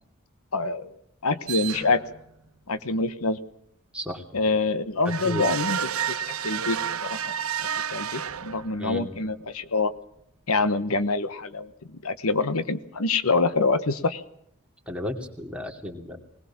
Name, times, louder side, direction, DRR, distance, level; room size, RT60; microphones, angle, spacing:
voice 1, 0.5-0.9 1.2-2.0 2.7-3.4 4.3-5.8 6.1-7.2 7.9-9.9 10.5-11.7 12.0-14.2, left 3 dB, 80° left, 12 dB, 1.1 m, -25 dB
sound 1, 1.5-2.2 5.0-8.9, right 8 dB, 80° right, 1.1 m, -30 dB
voice 2, 3.9-4.4 5.2-5.4 8.8-9.1 14.9-16.2, equal, 5° right, 1 dB, 2.7 m, -34 dB
20.5 x 20.5 x 7.2 m, 0.74 s
head